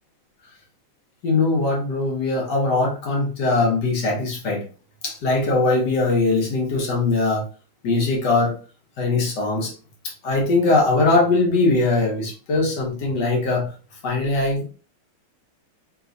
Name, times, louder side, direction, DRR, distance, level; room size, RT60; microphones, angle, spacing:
voice 1, 1.2-4.7 5.0-7.4 7.8-8.6 9.0-9.7 10.0-13.7 14.0-14.7, left 3 dB, 60° left, -1 dB, 1.3 m, -21 dB
3.3 x 3.0 x 2.5 m, 0.36 s
omnidirectional pair, 2.4 m